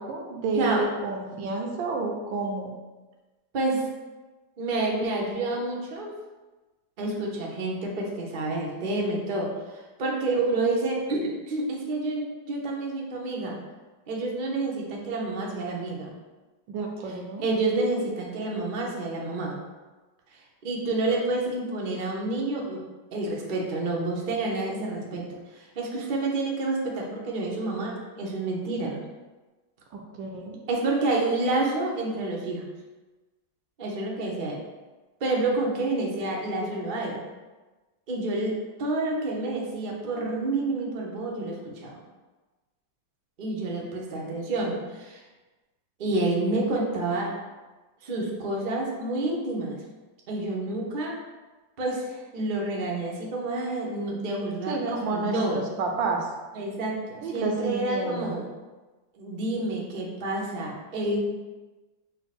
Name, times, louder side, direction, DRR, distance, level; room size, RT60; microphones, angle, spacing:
voice 1, 0.0-2.7 16.7-17.5 29.9-30.6 54.7-56.3 57.2-58.3, right 3 dB, 80° right, 2 dB, 1.4 m, -30 dB
voice 2, 3.5-3.9 4.6-6.1 7.0-13.6 14.1-16.1 17.4-19.6 20.3-22.8 23.1-25.2 25.5-29.0 30.7-32.7 33.8-34.6 35.2-37.2 38.1-38.5 38.8-42.0 43.4-45.2 46.0-47.3 48.0-49.8 50.3-51.2 51.8-55.6 56.5-58.5 59.1-61.2, right 2 dB, 60° right, -2 dB, 0.5 m, -29 dB
5.6 x 2.1 x 4.1 m, 1.2 s
omnidirectional pair, 2.1 m